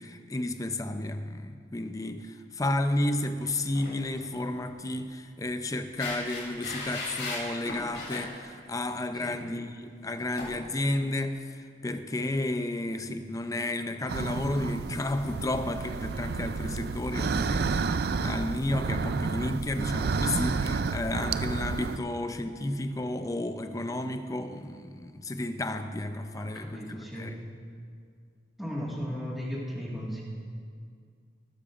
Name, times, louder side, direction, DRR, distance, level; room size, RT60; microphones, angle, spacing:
voice 1, 0.0-27.4, left 1 dB, 20° left, 0.5 m, -32 dB
sound 1, 3.4-4.0 4.3-4.5 6.0-8.3 10.4-10.5, left 2 dB, 70° left, 2.9 m, -37 dB
sound 2, 14.1-22.0, right 4 dB, 60° right, 0.4 m, -30 dB
voice 2, 26.4-27.3 28.6-30.2, equal, ahead, 1.7 m, -36 dB
19.0 x 12.0 x 2.5 m
head